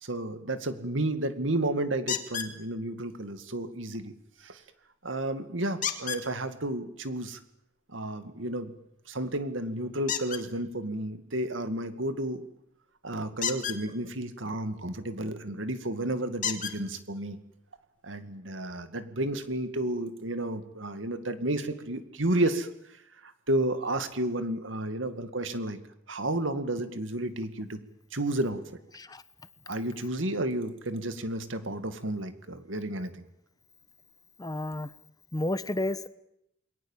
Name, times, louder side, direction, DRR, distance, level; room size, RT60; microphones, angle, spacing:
voice 1, 0.0-4.1 4.4-4.6 5.0-7.4 7.9-8.7 9.1-12.5 13.0-17.4 18.0-22.7 23.2-25.8 26.1-27.8 28.1-28.6 29.7-33.3, right 1 dB, 80° right, 10 dB, 2.2 m, -31 dB
sound 1, 2.1-2.5 5.8-6.2 10.1-10.4 13.3-13.8 15.5-15.6 16.4-16.8 17.8-17.9 18.3-18.4, left 8 dB, 45° left, 2.3 m, -31 dB
voice 2, 34.4-34.9 35.3-36.1, left 1 dB, 20° left, 14 dB, 1.0 m, -31 dB
28.5 x 21.5 x 7.4 m, 0.79 s
head